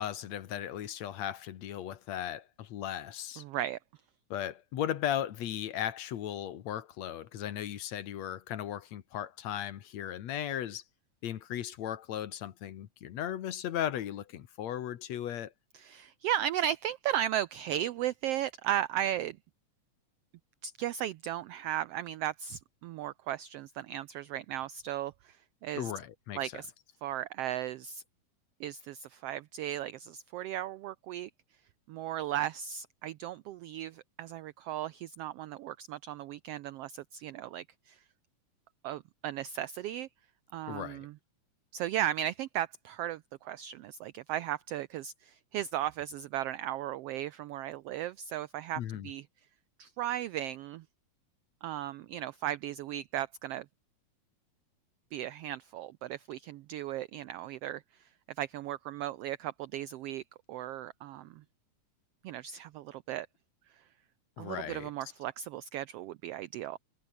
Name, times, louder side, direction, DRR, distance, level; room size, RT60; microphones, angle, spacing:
voice 1, 0.0-3.4 4.3-10.8 11.2-15.5 25.7-26.5 40.7-41.1 48.8-49.1 64.4-64.9, left 10 dB, 65° left, 2.5 m, -36 dB
voice 2, 3.4-3.8 15.7-19.4 20.6-25.9 26.4-26.7 27.0-28.0 28.6-31.3 31.9-38.0 38.8-40.1 40.5-41.1 41.7-49.2 49.8-50.8 51.6-53.7 55.1-58.1 58.4-60.2 60.5-61.4 62.2-63.3 64.4-66.8, right 11 dB, 85° right, 1.3 m, -36 dB
omnidirectional pair, 3.4 m